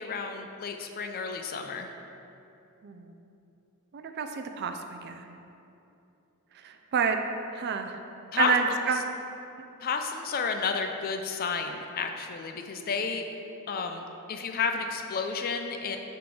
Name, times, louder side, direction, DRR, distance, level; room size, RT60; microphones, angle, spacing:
voice 1, 0.0-1.9 8.3-8.5 9.8-13.2 13.7-16.0, left 5 dB, 40° left, 5 dB, 0.4 m, -31 dB
voice 2, 2.8-3.1 3.9-5.3 6.6-7.2 7.5-8.0 8.4-9.0, right 6 dB, 50° right, 6 dB, 0.4 m, -29 dB
5.9 x 3.8 x 4.7 m, 2.8 s
head